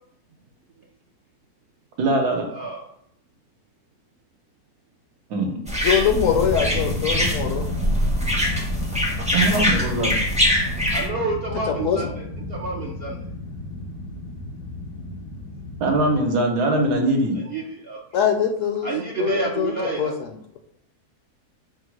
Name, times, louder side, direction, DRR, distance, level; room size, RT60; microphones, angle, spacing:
voice 1, 2.0-2.5 5.3-5.6 9.3-10.2 15.8-17.4, right 1 dB, 80° right, 2 dB, 1.5 m, -21 dB
voice 2, 2.5-2.9 10.9-13.2 17.4-18.2 18.8-20.1, right 3 dB, 65° right, -1 dB, 0.6 m, -29 dB
sound 1, 5.7-11.1, equal, 10° right, 0.4 m, -23 dB
voice 3, 5.8-7.7 11.8-12.1 18.1-18.9 19.2-19.7 20.0-20.3, left 8 dB, 65° left, 4 dB, 0.8 m, -22 dB
sound 2, 6.1-16.2, left 2 dB, 85° left, 1.2 m, -32 dB
4.5 x 2.1 x 4.6 m, 0.71 s
omnidirectional pair, 1.6 m